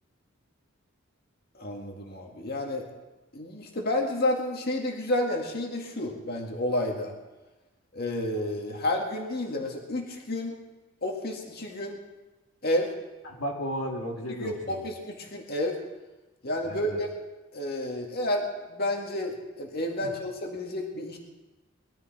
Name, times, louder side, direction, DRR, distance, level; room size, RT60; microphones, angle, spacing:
voice 1, 1.5-2.9 3.3-7.1 7.9-10.6 11.0-12.0 12.6-12.9 14.4-15.8 16.4-17.1 17.5-21.2, left 1 dB, 50° left, 1 dB, 2.0 m, -30 dB
voice 2, 13.2-14.9 16.6-17.0 20.0-20.1, equal, 80° left, 0 dB, 2.0 m, -34 dB
21.0 x 12.5 x 4.4 m, 1.1 s
head